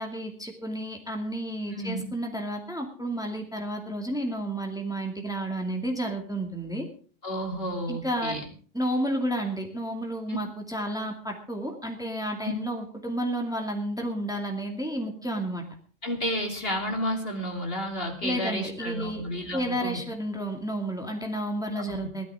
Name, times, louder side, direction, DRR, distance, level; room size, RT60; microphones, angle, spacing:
voice 1, 0.0-6.9 7.9-8.4 8.7-15.7 18.2-19.2 19.5-22.3, right 1 dB, 5° right, 3 dB, 2.4 m, -31 dB
voice 2, 7.2-8.5 10.3-10.4 16.0-20.0 21.8-22.0, equal, 50° left, 2 dB, 3.3 m, -31 dB
17.5 x 12.5 x 4.9 m, 0.42 s
omnidirectional pair, 1.3 m